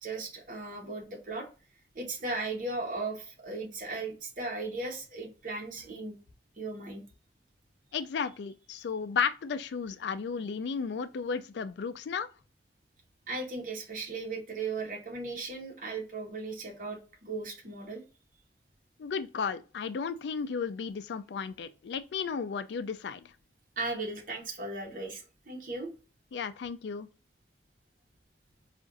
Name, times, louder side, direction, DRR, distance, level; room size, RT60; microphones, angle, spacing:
voice 1, 0.0-1.5 1.9-6.2 6.6-7.0 13.3-18.0 23.8-25.9, right 3 dB, 50° right, 1.0 m, -37 dB
voice 2, 7.9-12.3 19.0-23.3 26.3-27.1, left 6 dB, 80° left, 0.4 m, -34 dB
4.8 x 2.5 x 2.5 m
head